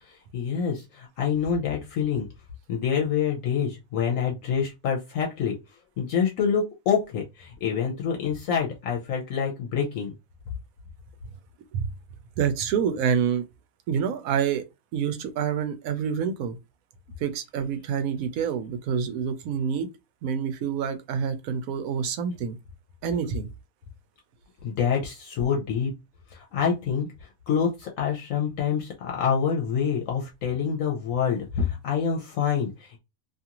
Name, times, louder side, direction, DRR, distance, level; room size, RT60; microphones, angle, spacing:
voice 1, 0.0-2.3 2.7-5.6 6.0-10.1 24.6-25.9 26.3-33.0, left 7 dB, 75° left, 1.0 m, -27 dB
voice 2, 12.4-13.4 13.9-14.6 14.9-16.6 17.2-19.9 20.2-22.6 23.0-23.5, right 7 dB, 85° right, 1.0 m, -27 dB
2.7 x 2.4 x 2.9 m
omnidirectional pair, 1.4 m